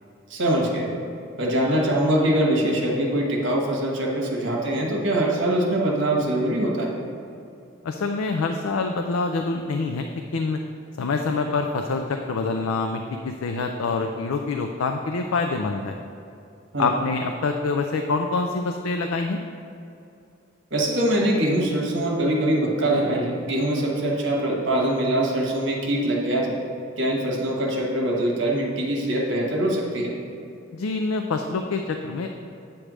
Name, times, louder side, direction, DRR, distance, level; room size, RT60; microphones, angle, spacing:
voice 1, 0.3-0.9 1.4-6.9 16.7-16.9 20.7-26.5 27.0-30.1, right 1 dB, 65° right, -1 dB, 1.3 m, -23 dB
voice 2, 7.8-10.1 10.3-10.6 11.0-16.0 16.8-19.4 30.7-32.3, left 3 dB, 90° left, 4 dB, 0.4 m, -26 dB
8.5 x 3.3 x 6.1 m, 2.5 s
head